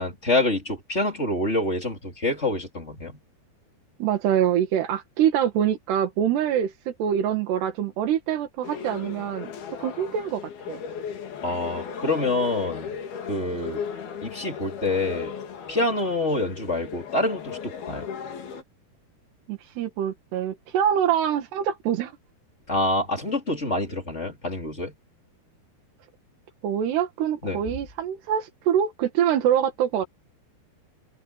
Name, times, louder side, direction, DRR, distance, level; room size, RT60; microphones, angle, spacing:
voice 1, 0.0-3.2 11.4-13.0 13.3-13.9 14.2-15.4 15.7-18.1 22.7-24.9 27.4-27.6, left 2 dB, 15° left, 3.7 m, -26 dB
voice 2, 4.0-9.5 9.8-10.8 19.5-22.1 26.6-30.1, right 9 dB, 75° right, 4.0 m, -25 dB
sound 1, 8.6-18.6, left 7 dB, 65° left, 4.6 m, -36 dB
omnidirectional pair, 4.8 m